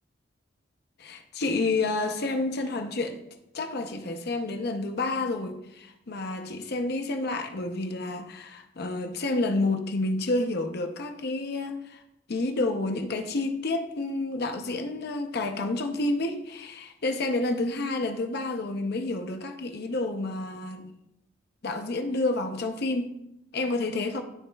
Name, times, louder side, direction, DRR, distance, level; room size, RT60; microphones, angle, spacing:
voice 1, 1.0-3.2 3.5-12.0 12.3-20.9 21.6-23.1 23.5-24.2, left 2 dB, 55° left, 0.6 m, -29 dB
11.5 x 4.2 x 2.3 m
head